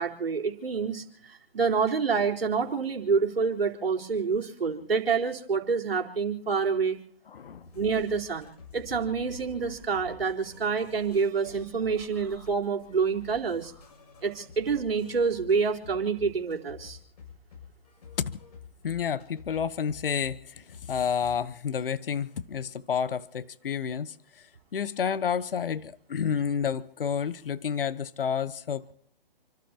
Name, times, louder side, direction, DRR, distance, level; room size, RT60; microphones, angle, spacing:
voice 1, 0.0-7.0 7.7-13.7 14.2-17.0, right 5 dB, 80° right, 2 dB, 4.1 m, -27 dB
voice 2, 7.3-7.7 18.2-18.4 18.8-28.9, left 7 dB, 70° left, 14 dB, 1.0 m, -30 dB
sound 1, 7.6-21.4, left 4 dB, 45° left, 7.1 m, -49 dB
29.5 x 13.5 x 2.9 m, 0.64 s
hypercardioid pair, 165°, 29 cm